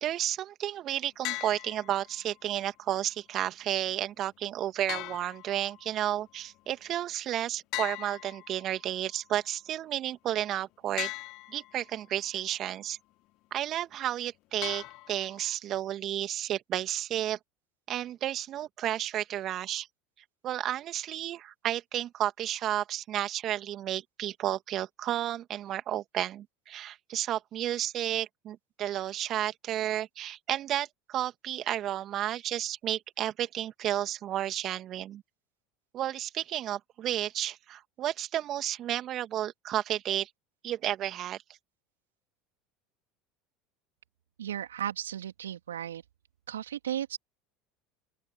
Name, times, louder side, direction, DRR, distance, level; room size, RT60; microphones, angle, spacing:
voice 1, 0.0-11.1 11.5-13.0 13.5-17.4 17.9-19.9 20.4-35.2 35.9-40.3 40.6-41.4, right 12 dB, 45° right, 1.9 m, -32 dB
sound 1, 1.2-2.3 4.9-6.0 7.7-9.0 11.0-11.9 14.6-15.5, left 20 dB, 55° left, 1.1 m, -39 dB
voice 2, 44.4-46.0 46.5-47.2, right 10 dB, 80° right, 3.2 m, -35 dB
open air
hypercardioid pair, 75°, 0 cm